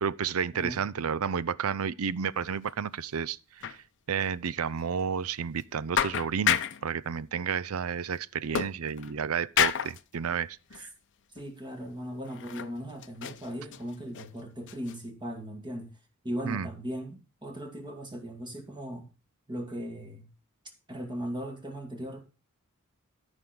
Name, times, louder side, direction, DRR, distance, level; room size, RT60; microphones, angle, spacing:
voice 1, 0.0-3.8 4.1-10.9 16.4-16.7, right 6 dB, 85° right, 0.5 m, -31 dB
voice 2, 0.5-0.9 11.3-15.9 16.2-19.1 19.5-20.3 20.9-22.2, equal, 20° right, 2.3 m, -38 dB
sound 1, 2.3-2.7 3.0-3.1 3.6-3.8 4.2-4.3 4.8-4.9 5.6-5.7 5.9-6.9 8.5-9.2 9.6-10.0 10.7-10.8 11.4-11.5 12.2-12.8 13.0-14.3 14.7-15.0, left 10 dB, 60° left, 0.6 m, -30 dB
13.0 x 5.2 x 6.2 m
head